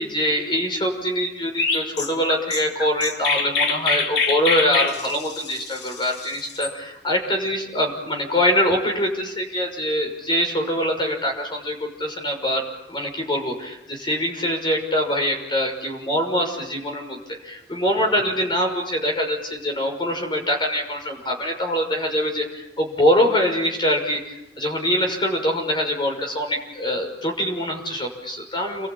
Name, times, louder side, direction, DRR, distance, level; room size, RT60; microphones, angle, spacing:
voice 1, 0.0-12.6 12.9-28.9, equal, 25° left, 2 dB, 6.2 m, -24 dB
Chirp tweet, 1.6-6.7, left 5 dB, 70° left, 3.2 m, -25 dB
29.5 x 22.5 x 8.7 m, 0.88 s
head